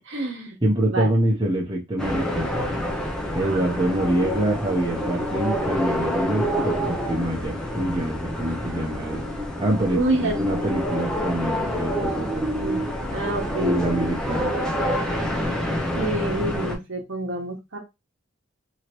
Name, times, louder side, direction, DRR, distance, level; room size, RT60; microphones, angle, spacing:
voice 1, 0.1-0.6 0.9-1.1 3.4-3.8 9.9-10.4 12.6-14.1 15.9-17.8, right 1 dB, 60° right, 1 dB, 1.0 m, -28 dB
voice 2, 0.6-2.7 3.3-9.2 9.6-12.5 13.6-14.6, right 1 dB, 20° right, -3 dB, 0.8 m, -25 dB
sound 1, 2.0-16.8, equal, 5° left, 0.4 m, -27 dB
3.0 x 2.8 x 2.9 m, 0.22 s
head